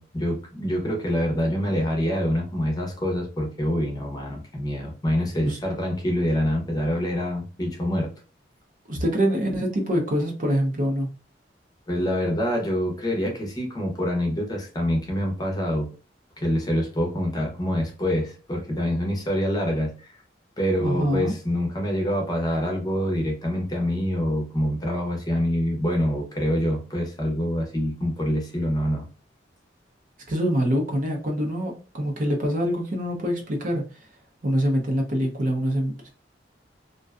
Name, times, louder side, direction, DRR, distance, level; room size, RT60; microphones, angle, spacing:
voice 1, 0.0-8.1 11.9-15.9 16.4-20.2 20.6-29.1, equal, 20° left, 1 dB, 0.7 m, -26 dB
voice 2, 8.9-11.1 20.8-21.3 30.3-33.8 34.4-36.1, equal, 45° right, 2 dB, 0.6 m, -25 dB
2.5 x 2.2 x 2.3 m, 0.35 s
head